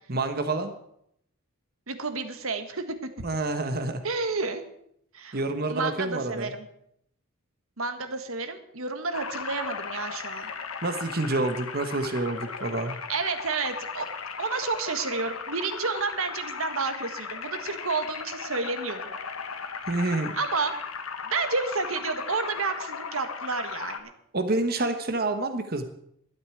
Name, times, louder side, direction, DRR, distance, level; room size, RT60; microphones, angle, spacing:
voice 1, 0.1-0.7 3.2-4.0 5.3-6.5 10.8-13.0 19.9-20.4 24.3-25.8, right 2 dB, 45° right, 8 dB, 1.1 m, -28 dB
voice 2, 1.9-2.9 4.0-4.6 5.1-5.4 5.7-6.6 7.8-10.5 13.1-14.1 14.4-19.1 20.3-20.7 21.2-24.1, right 4 dB, 80° right, 9 dB, 1.5 m, -30 dB
sound 1, 9.1-24.0, left 5 dB, 90° left, 1.4 m, -37 dB
12.5 x 8.1 x 8.2 m, 0.72 s
head